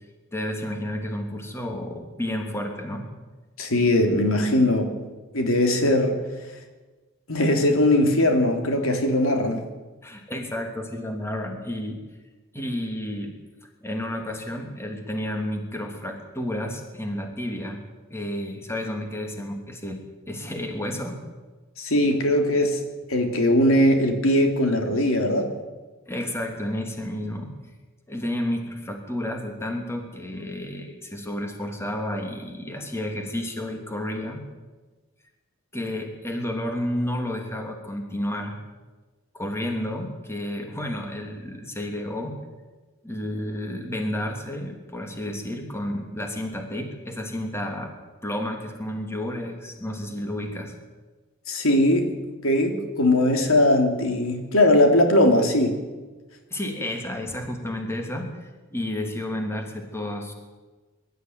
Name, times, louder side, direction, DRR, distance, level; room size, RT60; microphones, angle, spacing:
voice 1, 0.3-3.1 10.0-12.0 12.5-13.3 13.8-17.8 18.1-20.0 20.3-21.2 26.1-27.5 28.1-34.4 35.7-38.5 39.3-42.4 43.0-47.9 48.2-50.7 56.5-60.3, left 1 dB, 15° left, 2 dB, 3.0 m, -31 dB
voice 2, 3.6-4.9 5.3-6.2 7.3-9.6 21.8-22.8 23.1-25.5 51.5-52.1 52.4-55.8, left 1 dB, 90° left, 4 dB, 3.2 m, -20 dB
22.5 x 13.5 x 9.6 m, 1.3 s
head